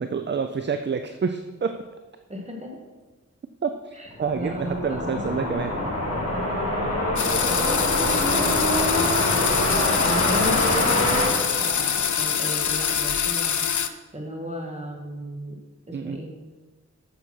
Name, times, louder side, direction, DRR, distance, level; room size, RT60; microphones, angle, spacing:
voice 1, 0.0-1.8 3.6-5.7 11.8-11.9 15.9-16.2, right 5 dB, 35° right, 8 dB, 0.4 m, -28 dB
voice 2, 2.3-2.8 3.9-5.5 7.5-13.7 14.1-15.6 15.9-16.3, equal, 20° right, 0 dB, 1.9 m, -35 dB
sound 1, 4.1-12.4, left 1 dB, 50° left, 3.1 m, -25 dB
sound 2, 7.2-13.9, left 8 dB, 70° left, 0.6 m, -25 dB
8.8 x 6.8 x 4.5 m, 1.2 s
wide cardioid pair, 90°, 31 cm